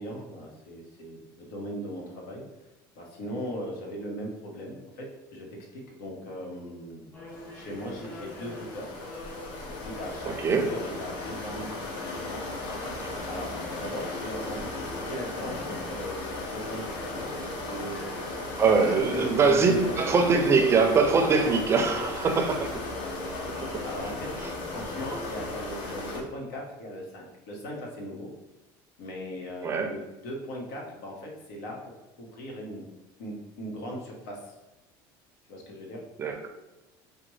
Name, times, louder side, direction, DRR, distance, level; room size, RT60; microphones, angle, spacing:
voice 1, 0.0-2.4 3.0-5.5 5.7-7.1 7.5-8.9 9.7-11.7 12.0-12.5 13.3-18.0 18.6-19.9 20.2-20.4 21.2-22.3 23.0-23.3 23.8-24.5 24.7-28.3 29.0-31.9 32.2-32.8 33.2-34.6 35.5-36.0, equal, 85° left, -1 dB, 1.1 m, -38 dB
sound 1, 7.1-26.2, left 1 dB, 20° left, 1.3 m, -45 dB
sound 2, 7.3-26.2, left 2 dB, 55° left, 0.7 m, -37 dB
voice 2, 10.3-10.7 18.6-22.7 23.7-23.8 29.6-29.9 36.2-36.5, right 4 dB, 25° right, 4 dB, 0.4 m, -23 dB
4.9 x 2.2 x 3.1 m, 1.0 s
cardioid pair, 135°, 10 cm